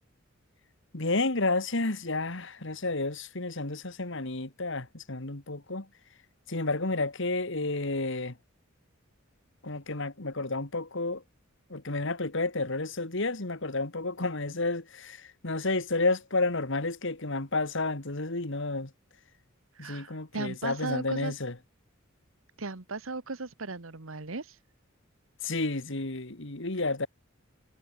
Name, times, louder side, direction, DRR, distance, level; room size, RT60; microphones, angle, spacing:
voice 1, 0.9-5.9 6.5-8.4 9.6-11.2 11.7-18.9 19.8-21.6 25.4-27.1, left 2 dB, 60° left, 2.2 m, -31 dB
voice 2, 19.7-21.3 22.6-24.6, right 3 dB, 75° right, 1.5 m, -36 dB
head